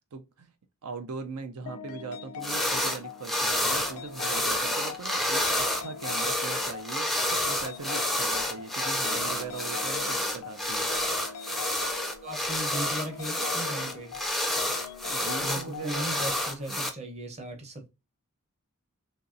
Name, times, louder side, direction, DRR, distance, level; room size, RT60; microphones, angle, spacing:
voice 1, 0.1-0.5 0.8-10.9 15.0-16.2, right 4 dB, 80° right, 0.5 m, -40 dB
sound 1, 1.7-16.4, left 7 dB, 70° left, 0.3 m, -42 dB
sound 2, 2.4-3.0 3.2-16.9, left 1 dB, ahead, 0.4 m, -29 dB
voice 2, 12.2-14.2 15.4-17.9, right 1 dB, 30° right, 0.8 m, -37 dB
3.0 x 2.6 x 2.5 m
head